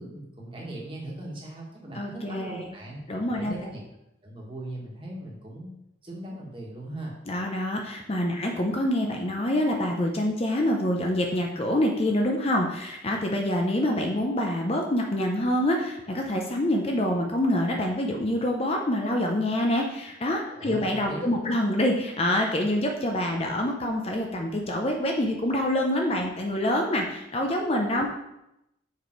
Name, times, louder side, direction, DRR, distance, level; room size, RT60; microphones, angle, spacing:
voice 1, 0.0-3.0 3.3-3.8 4.2-5.7 6.0-7.1 20.5-21.5, right 1 dB, 25° right, -3 dB, 1.6 m, -39 dB
voice 2, 1.9-2.6 3.1-3.6 7.3-28.1, left 1 dB, 30° left, 1 dB, 0.6 m, -26 dB
6.6 x 5.0 x 4.5 m, 0.85 s
head